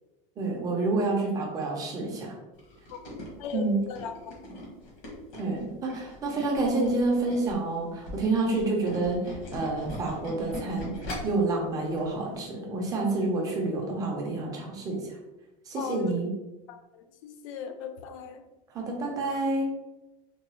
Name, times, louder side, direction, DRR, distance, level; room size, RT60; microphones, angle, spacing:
voice 1, 0.4-2.3 3.5-3.8 5.4-10.9 11.2-15.2 15.7-16.3 18.7-19.7, right 2 dB, 20° right, 0 dB, 0.5 m, -28 dB
Tools, 2.6-7.6 7.9-11.4 11.9-12.0 12.3-12.4, left 1 dB, 60° left, 1.3 m, -40 dB
voice 2, 3.4-4.7 15.7-16.2 16.7-18.4, left 7 dB, 80° left, 7 dB, 0.4 m, -38 dB
3.7 x 2.3 x 2.9 m, 1.0 s
cardioid pair, 170°, 17 cm